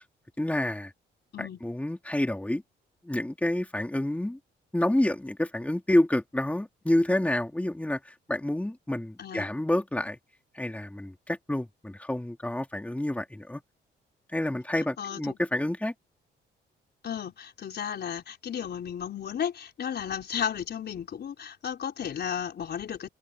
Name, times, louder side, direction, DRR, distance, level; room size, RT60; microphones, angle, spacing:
voice 1, 0.4-0.9 1.4-2.6 3.0-4.4 4.7-10.2 10.5-13.6 14.3-15.9, left 1 dB, 5° left, 2.9 m, -28 dB
voice 2, 15.0-15.4 17.0-23.1, left 8 dB, 55° left, 4.5 m, -34 dB
cardioid pair, 90°, 20 cm